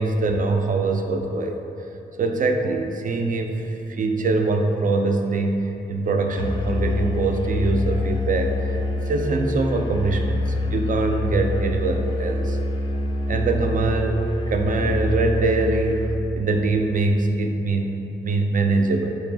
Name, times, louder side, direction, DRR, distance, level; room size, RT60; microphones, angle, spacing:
voice 1, 0.0-1.6 2.2-10.4 10.7-12.6 13.3-19.1, right 3 dB, 45° right, 4 dB, 0.4 m, -23 dB
Musical instrument, 6.3-16.2, left 1 dB, 25° left, 0.4 m, -26 dB
3.9 x 2.7 x 3.3 m, 2.9 s
supercardioid pair, 45°, 19 cm